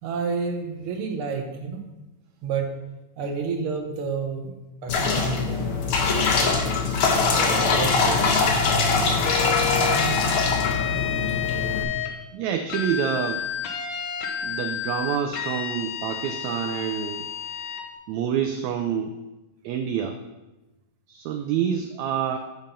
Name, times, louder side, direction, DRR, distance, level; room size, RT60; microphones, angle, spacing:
voice 1, 0.0-1.8 2.4-2.7 3.2-4.5 4.8-5.8 7.3-8.6 11.7-11.8, right 5 dB, 55° right, 2 dB, 1.7 m, -31 dB
sound 1, 4.9-11.8, left 4 dB, 60° left, 1.4 m, -22 dB
sound 2, 9.3-12.1 12.7-17.8, left 8 dB, 80° left, 2.5 m, -30 dB
voice 2, 12.3-13.4 14.4-17.3 18.1-19.2 19.6-20.2 21.1-22.4, right 8 dB, 80° right, 6 dB, 1.7 m, -27 dB
7.5 x 7.2 x 5.4 m, 1.0 s
omnidirectional pair, 3.6 m